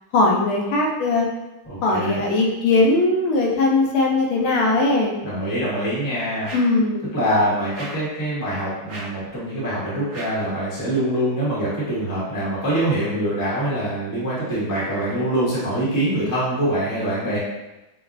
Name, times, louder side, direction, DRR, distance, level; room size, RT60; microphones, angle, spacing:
voice 1, 0.1-1.3 1.8-5.2 6.5-7.1, left 2 dB, 80° left, -1 dB, 1.4 m, -19 dB
voice 2, 1.7-2.2 5.2-6.5 7.1-17.4, right 1 dB, 20° left, -9 dB, 0.6 m, -24 dB
sound 1, 6.4-6.8 7.7-8.1 8.9-9.3 10.1-10.5, right 2 dB, 85° right, 0.7 m, -37 dB
5.2 x 2.0 x 2.5 m, 1.0 s
omnidirectional pair, 2.4 m